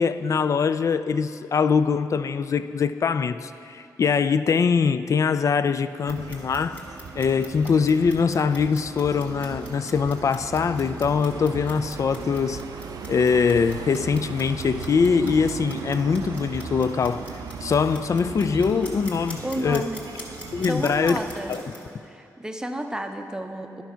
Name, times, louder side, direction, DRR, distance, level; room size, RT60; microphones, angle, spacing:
voice 1, 0.0-6.8 7.2-12.6 13.1-17.3 17.6-19.9 20.5-21.2 21.5-21.6, left 5 dB, 50° left, 13 dB, 0.3 m, -23 dB
Clock, 5.9-21.9, left 1 dB, 20° left, 1.9 m, -44 dB
sound 1, 6.1-21.6, right 6 dB, 65° right, 0.4 m, -38 dB
voice 2, 19.4-20.0 20.7-21.6 22.0-23.8, right 1 dB, 10° right, 6 dB, 0.6 m, -31 dB
10.5 x 4.6 x 5.6 m, 2.5 s
cardioid pair, 65°, 7 cm